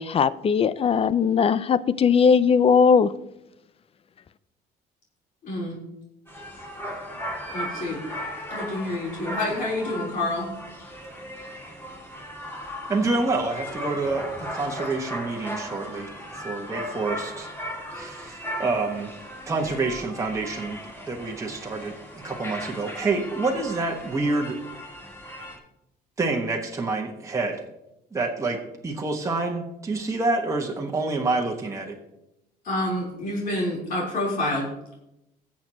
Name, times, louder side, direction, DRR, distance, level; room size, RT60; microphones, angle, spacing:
voice 1, 0.0-3.1, left 6 dB, 35° left, 17 dB, 0.5 m, -19 dB
voice 2, 5.4-5.8 7.5-8.0 8.5-10.5 32.7-34.7, left 1 dB, 55° left, -4 dB, 4.0 m, -28 dB
sound 1, 6.3-25.6, equal, 15° left, 2.5 m, -37 dB
voice 3, 12.9-17.5 17.9-19.1 19.5-20.8 21.1-24.6 26.2-27.6 28.1-32.0, right 3 dB, 20° right, 0 dB, 1.5 m, -27 dB
19.5 x 7.4 x 3.0 m, 0.86 s
cardioid pair, 110°, 17 cm